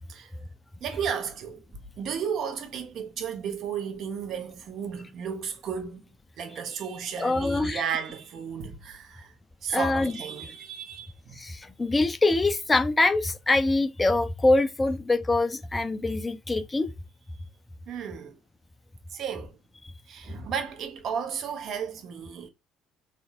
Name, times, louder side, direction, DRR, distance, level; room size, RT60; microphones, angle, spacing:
voice 1, 0.8-1.6 2.0-6.0 6.4-9.3 9.6-11.4 17.3-17.4 17.9-18.4 19.1-19.6 20.1-22.5, right 7 dB, 45° right, 0.8 m, -34 dB
voice 2, 7.2-7.8 9.7-10.1 11.4-16.9, left 2 dB, 20° left, 0.5 m, -24 dB
3.5 x 2.5 x 2.9 m
figure-of-eight pair, 55°, 0 cm